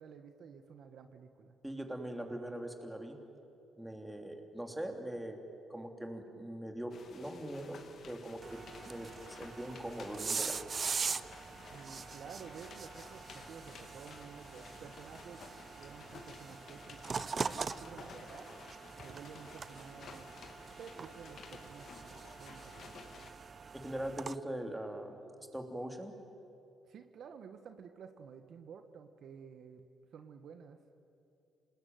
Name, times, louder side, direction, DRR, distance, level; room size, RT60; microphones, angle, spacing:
voice 1, 0.0-1.5 11.7-15.4 15.8-18.5 19.0-20.3 20.8-23.1 26.9-29.8 30.1-30.8, right 6 dB, 65° right, 8 dB, 1.4 m, -52 dB
voice 2, 1.6-3.2 3.8-5.4 5.7-10.6 23.7-25.2 25.5-26.1, right 1 dB, 5° right, 4 dB, 3.2 m, -42 dB
sound 1, 6.9-23.3, left 5 dB, 60° left, 2.6 m, -54 dB
sound 2, 8.4-24.4, right 5 dB, 40° right, 0.7 m, -42 dB
27.0 x 20.0 x 9.3 m, 2.8 s
cardioid pair, 90°, 0 cm